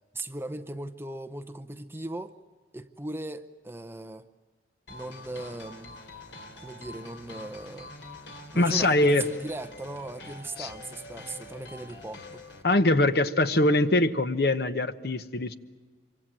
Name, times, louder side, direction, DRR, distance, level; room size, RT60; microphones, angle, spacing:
voice 1, 0.1-2.4 2.7-4.3 4.9-6.0 6.6-7.9 8.5-12.4, right 2 dB, 15° right, 0.7 m, -38 dB
sound 1, 4.9-12.6, left 2 dB, 80° left, 3.0 m, -45 dB
voice 2, 8.5-9.3 10.6-10.7 12.6-15.5, left 2 dB, 55° left, 1.0 m, -23 dB
26.0 x 24.5 x 7.6 m
head